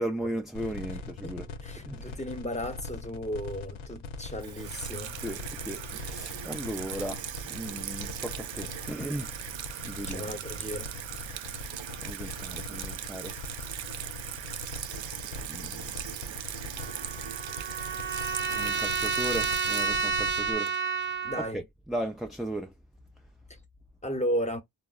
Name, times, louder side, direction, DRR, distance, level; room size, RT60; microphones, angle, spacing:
voice 1, 0.0-1.5 1.8-2.2 5.2-7.2 7.5-9.3 9.8-10.3 11.6-13.3 15.4-15.9 18.5-20.7 21.3-22.7, right 1 dB, ahead, 0.4 m, -36 dB
sound 1, 0.5-20.5, left 3 dB, 80° left, 0.7 m, -42 dB
voice 2, 1.0-5.1 10.1-10.9 21.2-21.6 24.0-24.6, equal, 15° left, 0.9 m, -34 dB
Water tap faucet / Sink (filling or washing), 4.4-21.1, right 11 dB, 75° right, 0.5 m, -39 dB
Trumpet, 16.8-21.5, right 5 dB, 25° right, 0.8 m, -30 dB
3.7 x 2.1 x 2.3 m
cardioid pair, 55°, 46 cm